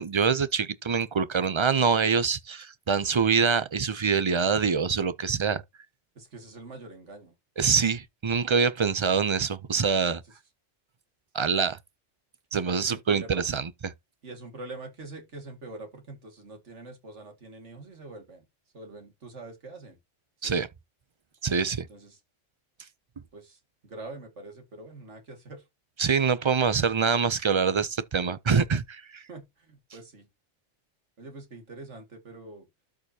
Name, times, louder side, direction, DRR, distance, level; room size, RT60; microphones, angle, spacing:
voice 1, 0.0-5.6 7.6-10.2 11.3-11.8 12.5-13.9 20.4-20.7 21.4-21.9 26.0-29.2, right 5 dB, 40° right, 0.4 m, -25 dB
voice 2, 6.2-7.3 12.9-13.4 14.2-18.4 18.7-20.0 20.4-20.6 21.9-22.2 23.3-25.6 29.3-30.3 31.2-32.7, right 2 dB, 65° right, 2.5 m, -44 dB
12.5 x 4.7 x 2.8 m
omnidirectional pair, 1.3 m